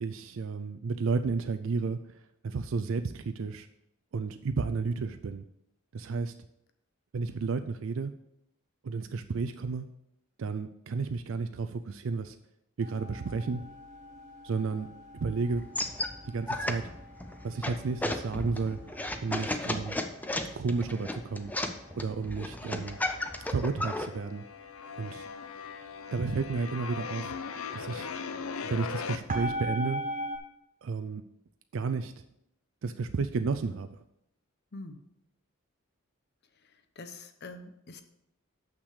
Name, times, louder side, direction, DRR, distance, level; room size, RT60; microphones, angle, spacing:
voice 1, 0.0-2.0 2.4-3.7 4.1-5.4 5.9-6.3 7.1-8.1 8.8-9.9 10.4-12.4 12.8-13.6 14.4-14.9 15.2-15.7 16.2-16.8 17.4-18.8 19.2-20.0 20.5-21.5 22.0-23.0 23.5-24.4 25.0-25.3 26.1-27.3 27.7-28.1 28.6-30.0 30.8-31.2 31.7-32.1 32.8-33.9, right 4 dB, 65° right, 9 dB, 0.4 m, -32 dB
sound 1, 12.8-30.4, equal, 35° right, 1.5 m, -43 dB
sound 2, 15.5-24.1, left 1 dB, 10° left, 0.5 m, -34 dB
sound 3, 20.9-21.7 22.0-29.2, left 6 dB, 85° left, 0.6 m, -40 dB
voice 2, 34.7-35.0 36.5-38.0, left 2 dB, 50° left, 8 dB, 0.8 m, -45 dB
6.7 x 6.0 x 6.4 m, 0.81 s
head